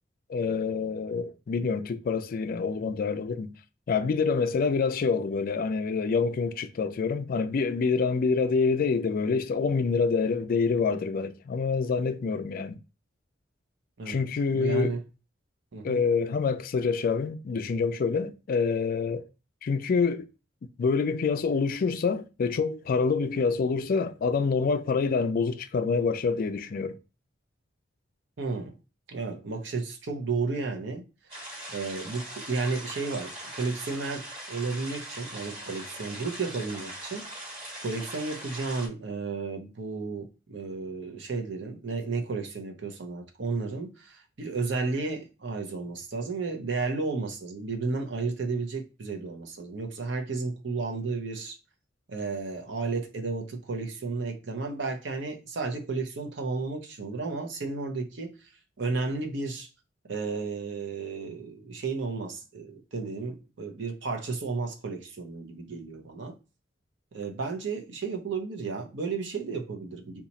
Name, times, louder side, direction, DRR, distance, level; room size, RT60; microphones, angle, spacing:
voice 1, 0.3-3.5 3.9-12.8 14.1-15.0 15.8-19.2 19.6-20.3 20.8-27.0, left 5 dB, 50° left, 0.3 m, -26 dB
voice 2, 14.0-15.0 15.7-16.0 28.4-28.8 29.1-31.0 31.3-31.4 31.7-51.6 52.1-58.3 58.8-59.7 60.1-66.3 67.1-70.2, right 4 dB, 65° right, 0.7 m, -33 dB
sound 1, 31.3-38.9, right 1 dB, 30° right, 1.4 m, -41 dB
2.9 x 2.3 x 4.0 m
head